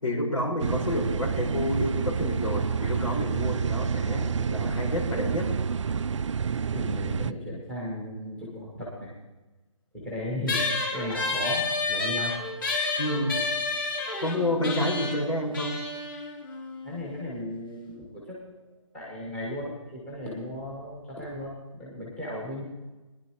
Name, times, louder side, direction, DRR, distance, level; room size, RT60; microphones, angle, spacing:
voice 1, 0.0-5.5 13.0-13.4 14.2-15.8, left 1 dB, 85° left, -2 dB, 4.9 m, -29 dB
sound 1, 0.6-7.3, right 6 dB, 60° right, 0.4 m, -28 dB
voice 2, 6.6-9.1 9.9-10.6 10.9-12.3 16.8-22.6, left 1 dB, 5° left, -6 dB, 1.3 m, -36 dB
sound 2, 10.5-17.3, left 3 dB, 40° left, 3.5 m, -30 dB
19.5 x 10.5 x 3.0 m, 1.1 s
hypercardioid pair, 170°, 17 cm